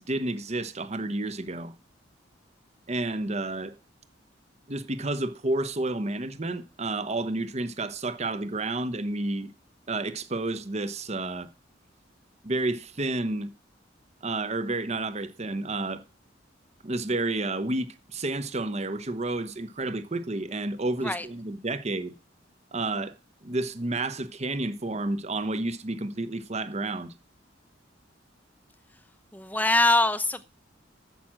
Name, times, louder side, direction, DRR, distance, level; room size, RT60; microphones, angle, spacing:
voice 1, 0.0-1.7 2.9-3.7 4.7-9.5 9.9-11.5 12.4-13.5 14.2-16.0 16.8-22.1 22.7-23.1 23.4-27.1, right 2 dB, 35° right, 1.0 m, -30 dB
voice 2, 29.3-30.5, left 2 dB, 10° left, 0.8 m, -23 dB
9.3 x 7.6 x 7.4 m
head